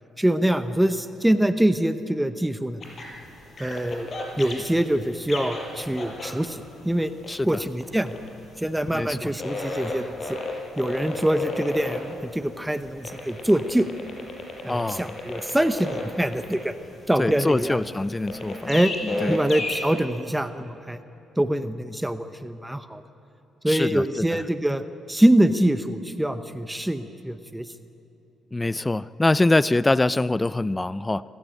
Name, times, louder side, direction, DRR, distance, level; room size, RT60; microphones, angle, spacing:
voice 1, 0.2-2.8 3.6-4.1 4.4-7.1 7.4-8.2 8.6-10.4 10.8-13.9 14.6-16.7 17.1-17.8 18.7-18.9 19.3-21.0 21.4-23.0 23.6-27.7, right 1 dB, 5° right, 10 dB, 0.9 m, -24 dB
sound 1, 2.8-19.9, left 2 dB, 50° left, 5.6 m, -33 dB
voice 2, 7.3-7.6 8.9-9.3 14.7-15.1 17.2-18.8 19.0-19.5 23.7-24.4 28.5-31.2, left 2 dB, 15° left, 18 dB, 0.4 m, -24 dB
25.5 x 15.5 x 9.2 m, 2.9 s
cardioid pair, 90°, 0 cm